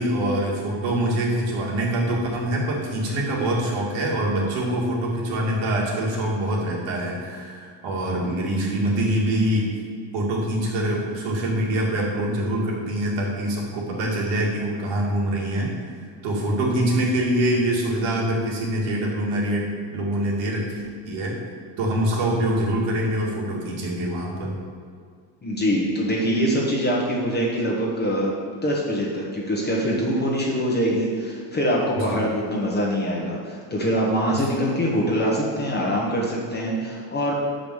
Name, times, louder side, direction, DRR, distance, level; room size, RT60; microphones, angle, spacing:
voice 1, 0.0-9.7 10.1-15.7 16.2-19.6 19.9-21.4 21.8-24.5 31.9-32.2 34.3-34.4, right 1 dB, 65° right, -2 dB, 2.2 m, -24 dB
voice 2, 25.4-28.3 28.6-37.3, equal, 20° left, -3 dB, 1.1 m, -24 dB
6.9 x 5.3 x 6.3 m, 2.1 s
cardioid pair, 150°, 49 cm